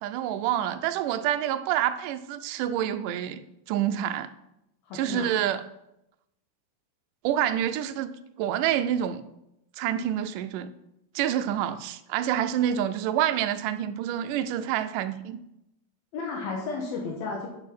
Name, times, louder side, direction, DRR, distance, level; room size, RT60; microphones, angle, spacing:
voice 1, 0.0-3.4 3.7-4.3 4.9-5.6 7.2-9.2 9.8-10.7 11.2-15.4, right 10 dB, 80° right, 1.9 m, -27 dB
voice 2, 4.9-5.3 16.1-17.5, left 4 dB, 80° left, 3.2 m, -33 dB
9.0 x 6.6 x 6.1 m
omnidirectional pair, 4.2 m